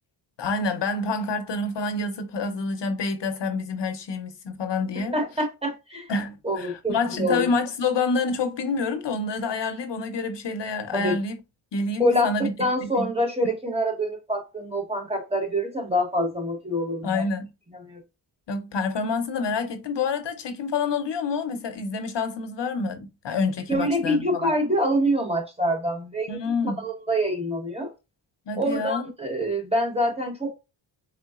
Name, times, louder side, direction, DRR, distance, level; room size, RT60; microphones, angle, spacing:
voice 1, 0.4-5.2 6.1-11.4 11.7-12.5 12.8-13.1 17.0-17.5 18.5-24.5 26.3-26.8 28.5-29.0, left 4 dB, 60° left, 0.7 m, -27 dB
voice 2, 5.1-6.1 6.4-7.5 10.9-11.2 12.0-12.3 12.6-17.2 17.7-18.0 23.7-27.9 28.6-30.6, equal, 10° right, 0.9 m, -26 dB
3.8 x 3.5 x 2.4 m
wide cardioid pair, 160°, 49 cm